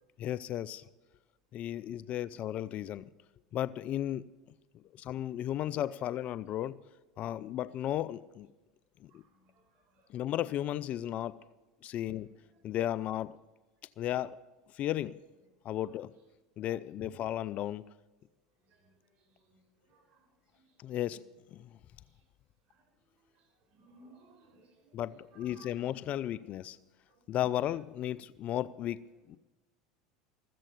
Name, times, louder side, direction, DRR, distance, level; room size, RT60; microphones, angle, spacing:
voice 1, 0.2-0.8 1.5-3.1 3.5-4.3 4.7-6.8 7.2-8.5 9.0-9.2 10.1-11.4 11.8-12.3 12.6-13.4 14.0-14.4 14.7-15.2 15.6-16.1 16.6-17.8 20.8-21.2 21.5-21.8 24.9-26.8 27.3-29.4, left 12 dB, 45° left, 18 dB, 0.5 m, -34 dB
voice 2, 9.1-9.5 9.9-10.1 18.7-19.0 19.4-19.5 19.9-20.2 22.7-22.8 23.7-25.0 25.3-25.9 27.1-27.2, right 2 dB, 45° right, 2 dB, 6.4 m, -60 dB
14.5 x 7.7 x 9.1 m, 1.1 s
hypercardioid pair, 90°, 3 cm